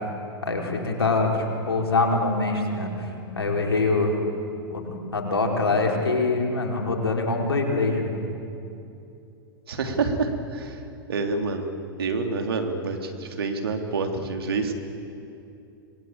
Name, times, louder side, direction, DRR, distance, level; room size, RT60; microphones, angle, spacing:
voice 1, 0.4-4.2 4.7-8.2, left 3 dB, 80° left, 1 dB, 4.4 m, -24 dB
voice 2, 9.7-10.8 11.1-11.7 12.0-14.7, right 4 dB, 70° right, 4 dB, 3.2 m, -27 dB
26.5 x 21.0 x 8.8 m, 2.7 s
figure-of-eight pair, 95°, 13 cm